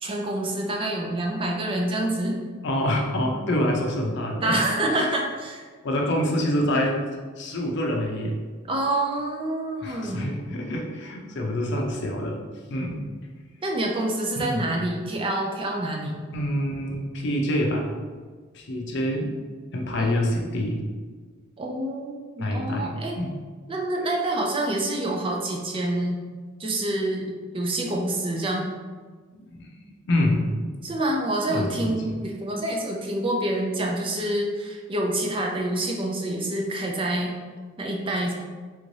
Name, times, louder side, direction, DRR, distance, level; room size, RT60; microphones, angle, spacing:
voice 1, 0.0-2.4 4.4-5.7 8.7-10.3 13.6-16.2 20.0-20.2 21.6-23.2 23.7-26.2 26.6-28.7 30.8-37.4 37.8-38.3, right 1 dB, 25° right, 0 dB, 0.4 m, -27 dB
voice 2, 2.6-4.6 5.8-7.0 7.4-8.4 9.8-12.4 12.7-13.0 14.3-14.7 16.3-17.9 18.5-19.3 19.7-20.8 22.4-23.3 29.3-30.5 31.5-32.2, left 1 dB, 60° left, 0 dB, 0.5 m, -26 dB
3.4 x 2.6 x 3.2 m, 1.5 s
head